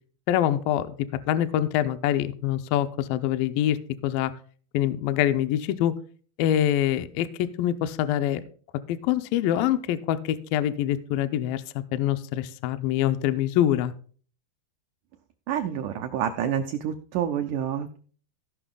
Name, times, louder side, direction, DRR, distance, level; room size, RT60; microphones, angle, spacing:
voice 1, 0.3-4.3 4.7-6.0 6.4-8.4 8.9-13.9, left 11 dB, 80° left, 11 dB, 2.2 m, -25 dB
voice 2, 15.5-18.0, right 9 dB, 90° right, 7 dB, 1.7 m, -28 dB
16.0 x 5.8 x 3.7 m, 0.42 s
omnidirectional pair, 4.6 m